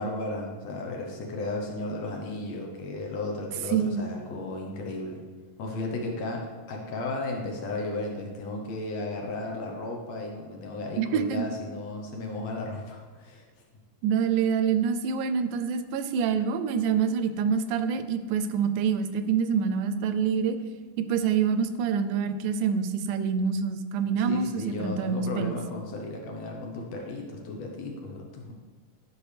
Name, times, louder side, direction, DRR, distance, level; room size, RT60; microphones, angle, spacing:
voice 1, 0.0-5.2 5.6-13.5 24.2-28.5, left 2 dB, 70° left, 0 dB, 1.8 m, -34 dB
voice 2, 3.7-4.1 11.0-11.5 14.0-20.6 21.0-25.6, right 6 dB, 90° right, 10 dB, 2.1 m, -26 dB
11.0 x 5.1 x 3.3 m, 1.4 s
omnidirectional pair, 3.5 m